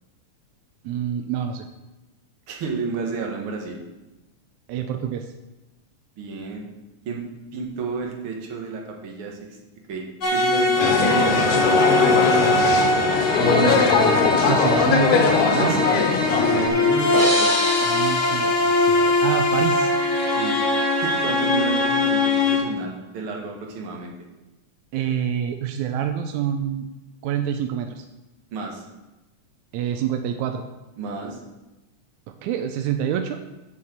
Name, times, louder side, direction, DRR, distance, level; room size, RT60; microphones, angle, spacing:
voice 1, 0.8-1.7 4.7-5.3 13.4-15.8 17.8-19.9 24.9-26.9 27.2-28.1 29.7-30.6 32.4-33.4, right 9 dB, 85° right, 5 dB, 2.0 m, -27 dB
voice 2, 2.5-3.8 6.2-6.7 7.1-7.2 7.5-9.4 9.9-10.0 10.3-12.2 15.7-16.1 16.5-17.5 20.3-20.5 20.9-24.1 28.5-28.8 31.0-31.4, right 4 dB, 50° right, 0 dB, 2.1 m, -31 dB
sound 1, 10.2-22.6, left 2 dB, 60° left, 0.8 m, -21 dB
sound 2, 10.8-16.7, left 5 dB, 85° left, 2.4 m, -20 dB
sound 3, 17.1-19.9, equal, 5° left, 1.7 m, -28 dB
7.7 x 5.7 x 7.6 m, 1.1 s
omnidirectional pair, 3.4 m